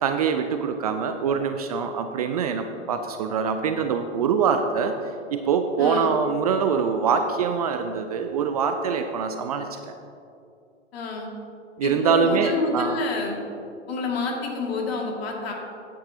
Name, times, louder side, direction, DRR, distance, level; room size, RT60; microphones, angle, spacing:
voice 1, 0.0-4.9 5.3-9.8 11.8-13.0, right 6 dB, 30° right, 7 dB, 0.4 m, -24 dB
voice 2, 5.8-6.1 10.9-11.3 11.8-13.4 13.9-15.5, left 3 dB, 55° left, 0 dB, 2.2 m, -28 dB
14.5 x 9.0 x 2.8 m, 2.6 s
figure-of-eight pair, 115°, 37 cm